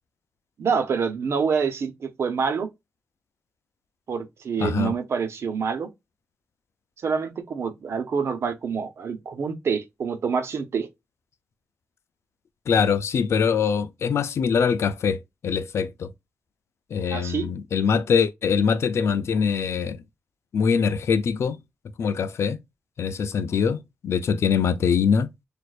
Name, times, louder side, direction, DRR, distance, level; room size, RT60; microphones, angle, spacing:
voice 1, 0.6-2.7 4.1-5.9 7.0-10.9 17.1-17.5, right 6 dB, 70° right, 0.9 m, -26 dB
voice 2, 4.6-4.9 12.7-16.1 16.9-20.0 20.5-21.6 22.0-22.6 23.0-25.3, left 6 dB, 80° left, 0.5 m, -23 dB
6.4 x 2.6 x 2.4 m
wide cardioid pair, 165°, 5 cm